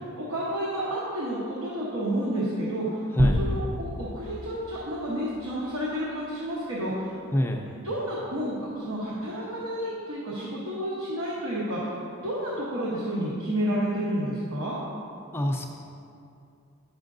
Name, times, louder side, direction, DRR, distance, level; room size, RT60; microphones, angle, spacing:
voice 1, 0.2-3.0 3.3-7.2 7.8-14.8, right 1 dB, 75° right, -7 dB, 1.1 m, -30 dB
sound 1, 3.2-5.8, equal, 30° right, 0.7 m, -28 dB
voice 2, 7.3-7.6 15.3-15.7, equal, 10° left, 1 dB, 0.4 m, -26 dB
9.6 x 6.0 x 2.6 m, 2.6 s
head